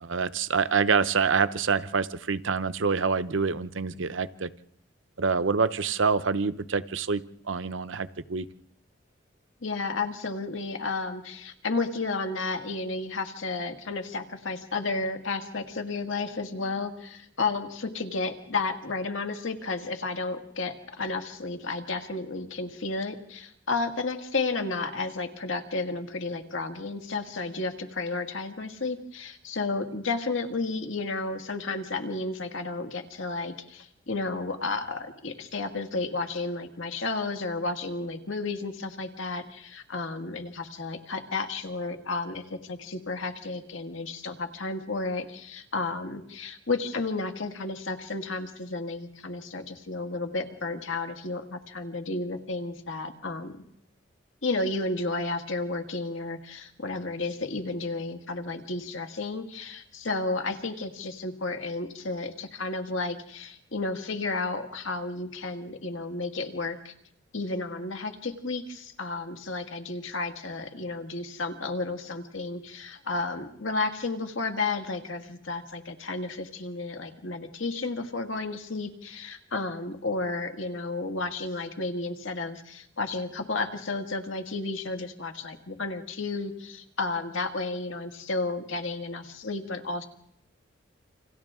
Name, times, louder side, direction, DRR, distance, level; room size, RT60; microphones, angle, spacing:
voice 1, 0.0-4.5 5.2-8.5, right 5 dB, 80° right, 13 dB, 0.8 m, -26 dB
voice 2, 9.6-53.6 54.4-66.9 67.3-90.1, left 3 dB, 85° left, 5 dB, 2.0 m, -32 dB
28.5 x 27.0 x 3.7 m, 0.74 s
head